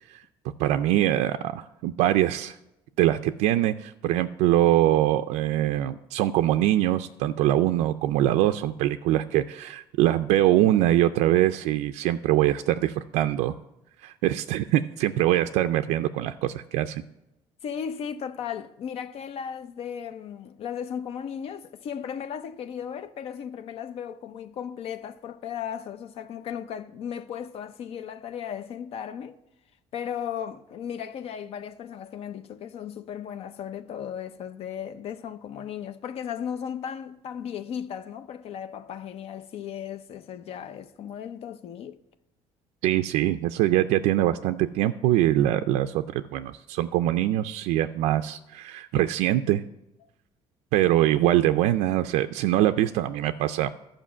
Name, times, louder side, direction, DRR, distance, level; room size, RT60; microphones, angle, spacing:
voice 1, 0.6-2.6 3.0-13.5 14.0-17.0 42.8-49.6 50.7-53.7, right 13 dB, 85° right, 0.4 m, -23 dB
voice 2, 17.6-29.4 29.9-42.0 50.0-50.1, left 8 dB, 60° left, 0.6 m, -36 dB
11.5 x 5.1 x 7.3 m
cardioid pair, 105°, 11 cm